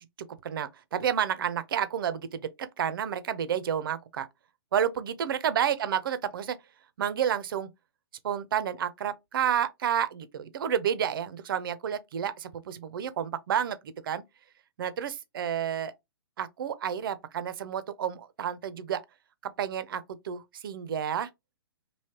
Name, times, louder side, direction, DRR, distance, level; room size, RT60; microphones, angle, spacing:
voice 1, 0.4-4.3 4.7-6.6 7.0-7.7 8.2-13.8 14.0-14.2 14.8-15.9 16.4-19.0 19.6-21.3, right 9 dB, 60° right, 0.5 m, -30 dB
3.2 x 2.7 x 2.8 m
hypercardioid pair, 125°, 13 cm